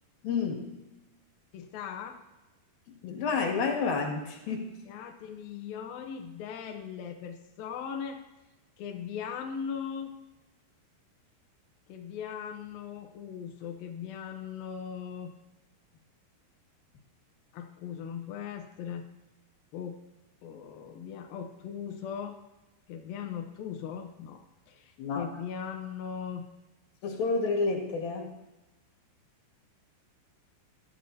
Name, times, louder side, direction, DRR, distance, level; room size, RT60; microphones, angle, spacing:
voice 1, 0.2-0.7 2.9-4.7 25.0-25.3 27.0-28.3, left 4 dB, 60° left, 1 dB, 3.6 m, -30 dB
voice 2, 1.5-2.2 4.9-8.2 8.8-10.2 11.9-15.3 17.5-19.0 19.7-20.0 20.4-22.4 22.9-24.4 24.7-26.5, left 7 dB, 75° left, 3 dB, 2.2 m, -39 dB
21.5 x 13.0 x 2.7 m, 1.1 s
omnidirectional pair, 5.1 m